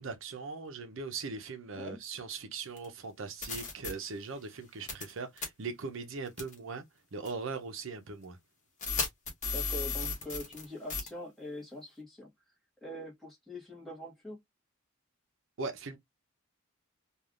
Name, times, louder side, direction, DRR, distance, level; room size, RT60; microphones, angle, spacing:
voice 1, 0.0-6.8 7.1-8.4 15.6-16.0, right 4 dB, 60° right, 0.6 m, -40 dB
sound 1, 2.8-2.9 3.4-3.9 4.9-5.1 5.4-5.5 6.4-6.5 7.3-7.4 8.8-10.6 10.9-11.1, left 4 dB, 35° left, 1.1 m, -34 dB
voice 2, 9.5-12.3 12.8-14.4, left 1 dB, ahead, 1.1 m, -43 dB
3.2 x 2.4 x 2.4 m
head